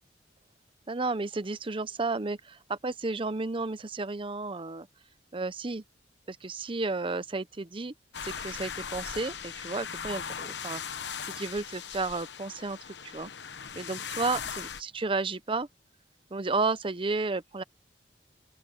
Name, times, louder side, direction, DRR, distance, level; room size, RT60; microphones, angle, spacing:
voice 1, 0.9-4.9 5.3-5.8 6.3-7.9 8.2-10.8 11.2-13.3 13.7-15.7 16.3-17.6, right 3 dB, 30° right, 0.7 m, -32 dB
sound 1, 8.1-14.8, left 7 dB, 70° left, 1.0 m, -39 dB
open air
head